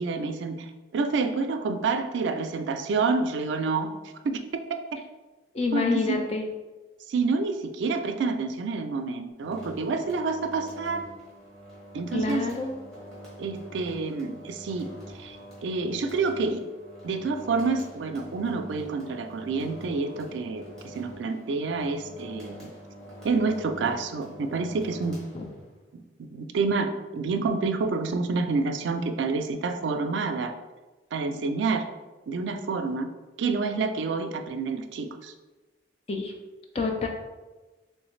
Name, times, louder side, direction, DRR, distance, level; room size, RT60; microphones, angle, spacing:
voice 1, 0.0-3.9 4.2-4.4 4.9-5.0 5.7-6.2 7.1-11.1 11.9-12.5 13.4-16.6 17.0-22.7 23.2-25.2 25.9-30.5 31.1-31.8 32.3-33.1 33.4-35.3, right 4 dB, 80° right, 7 dB, 0.3 m, -28 dB
voice 2, 5.5-6.4 12.1-12.8 25.3-25.4 36.1-36.3 36.7-37.1, left 4 dB, 35° left, 3 dB, 0.4 m, -27 dB
sound 1, 9.4-25.8, equal, 5° left, 1.0 m, -45 dB
3.2 x 3.1 x 3.1 m, 1.2 s
head